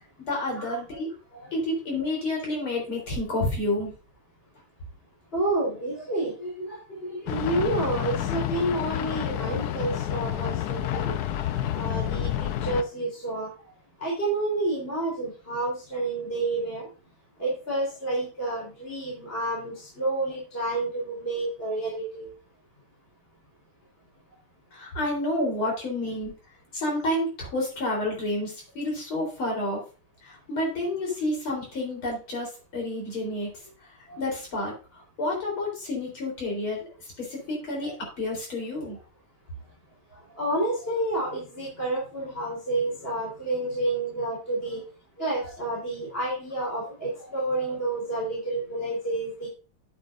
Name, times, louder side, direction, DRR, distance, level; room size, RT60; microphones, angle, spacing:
voice 1, 0.3-1.1 1.5-3.9 24.7-26.3 26.7-29.8 30.2-33.5 34.2-36.9 37.2-39.0 43.8-43.9, left 1 dB, 70° left, -1 dB, 4.6 m, -29 dB
voice 2, 5.3-11.1 11.7-13.5 14.0-16.9 17.4-22.3 34.1-34.2 37.8-37.9 40.4-44.8 45.2-49.5, right 2 dB, 25° left, -4 dB, 3.6 m, -29 dB
sound 1, 7.3-12.8, left 11 dB, 90° left, 0.8 m, -29 dB
9.3 x 8.6 x 2.5 m, 0.35 s
omnidirectional pair, 2.4 m